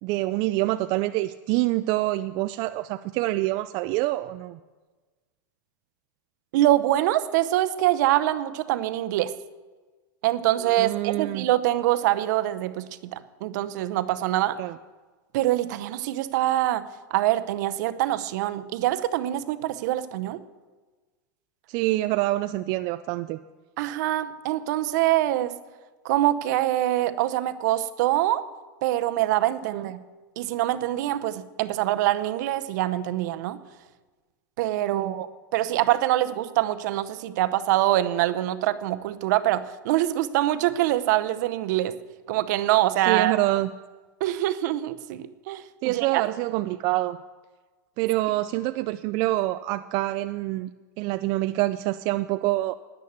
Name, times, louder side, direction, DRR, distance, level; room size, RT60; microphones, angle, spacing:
voice 1, 0.0-4.6 10.6-11.5 14.6-14.8 21.7-23.4 29.7-29.8 34.9-35.1 43.1-43.7 45.8-47.2 48.0-52.8, right 17 dB, 50° right, 10 dB, 0.3 m, -26 dB
voice 2, 6.5-9.3 10.2-14.6 15.3-16.8 17.1-20.4 23.8-25.5 26.0-28.4 28.8-30.0 30.4-33.6 34.6-41.9 42.3-43.4 44.2-46.2, right 14 dB, 65° right, 12 dB, 0.7 m, -24 dB
10.0 x 9.5 x 8.0 m, 1.3 s
supercardioid pair, 125°, 10 cm